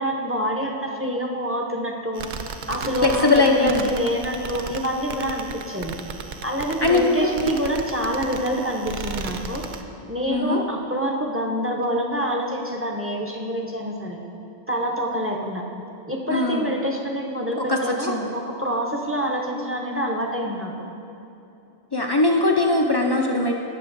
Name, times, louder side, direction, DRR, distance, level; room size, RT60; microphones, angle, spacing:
voice 1, 0.0-2.3 2.7-6.0 6.4-9.7 10.1-14.2 14.7-15.6 16.1-20.7, equal, 15° right, 0 dB, 0.6 m, -26 dB
sound 1, 2.1-9.8, right 4 dB, 55° right, 0.6 m, -35 dB
voice 2, 3.0-3.9 6.8-7.6 10.3-10.6 16.3-16.8 17.6-18.3 21.9-23.5, left 2 dB, 40° left, 1 dB, 0.3 m, -21 dB
17.5 x 6.7 x 2.6 m, 2.8 s
omnidirectional pair, 1.2 m